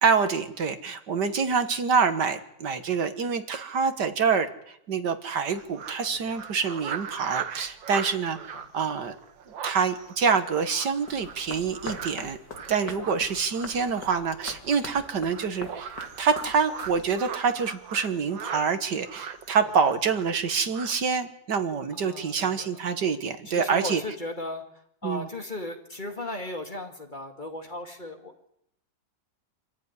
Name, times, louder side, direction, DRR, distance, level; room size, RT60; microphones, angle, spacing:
voice 1, 0.0-4.5 4.9-8.4 8.7-9.1 9.6-12.4 12.7-24.0 25.0-25.3, right 5 dB, 65° right, 9 dB, 2.0 m, -26 dB
sound 1, 5.5-18.6 19.0-20.4 20.7-21.0, right 7 dB, 80° right, 2.1 m, -39 dB
voice 2, 8.3-8.7 12.8-13.1 21.9-22.8 23.5-24.7 25.0-28.5, left 1 dB, 25° left, 4 dB, 2.4 m, -37 dB
sound 2, 11.1-17.4, left 4 dB, 65° left, 2.7 m, -44 dB
25.5 x 14.5 x 9.8 m, 0.78 s
omnidirectional pair, 2.0 m